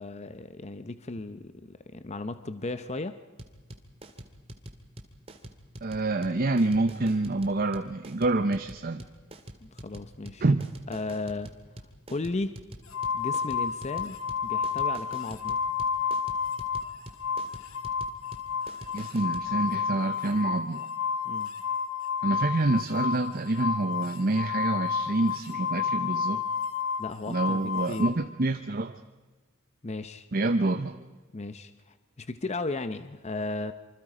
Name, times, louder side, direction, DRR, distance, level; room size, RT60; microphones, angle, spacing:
voice 1, 0.0-3.2 9.6-10.4 10.9-11.5 12.1-12.5 13.1-15.6 21.2-21.5 27.0-28.1 29.8-30.3 31.3-33.7, left 2 dB, 30° left, 11 dB, 0.7 m, -35 dB
sound 1, 3.4-19.5, right 1 dB, 30° right, 2.1 m, -45 dB
voice 2, 5.8-9.0 10.4-10.7 18.9-20.9 22.2-26.4 27.3-29.0 30.3-31.0, right 2 dB, 45° right, 9 dB, 0.8 m, -27 dB
sound 2, 12.9-16.9 17.2-28.1, left 6 dB, 80° left, 2.0 m, -31 dB
26.5 x 25.0 x 5.0 m, 1.3 s
head